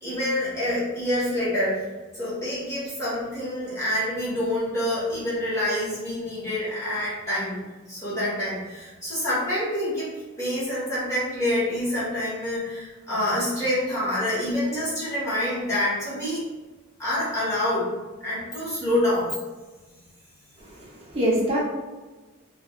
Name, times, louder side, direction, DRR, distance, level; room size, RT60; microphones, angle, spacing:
voice 1, 0.0-1.8 2.1-7.6 7.9-10.1 10.4-16.4 17.0-17.9 18.2-19.3, left 1 dB, 15° left, -10 dB, 1.3 m, -27 dB
voice 2, 20.6-21.6, equal, 30° right, -6 dB, 0.9 m, -25 dB
3.3 x 2.6 x 2.4 m, 1.2 s
head